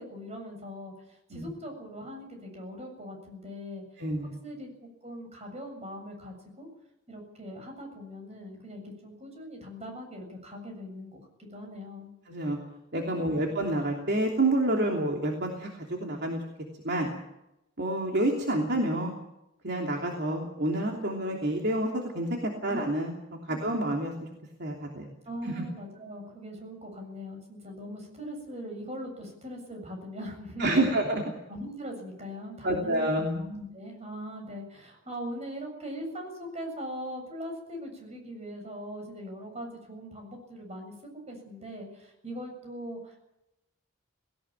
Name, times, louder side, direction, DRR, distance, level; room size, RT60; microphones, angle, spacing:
voice 1, 0.0-3.8 4.4-4.7 5.0-6.7 7.1-12.1 22.7-22.8 25.2-30.9 31.5-43.2, equal, 35° right, 3 dB, 7.5 m, -41 dB
voice 2, 4.0-4.3 12.3-12.6 12.9-16.4 16.8-17.1 17.8-19.1 19.6-23.1 23.5-24.1 24.6-25.1 25.4-25.6 30.6-31.2 32.6-33.4, right 1 dB, 60° right, 0 dB, 3.1 m, -28 dB
19.0 x 18.0 x 9.0 m, 0.88 s
head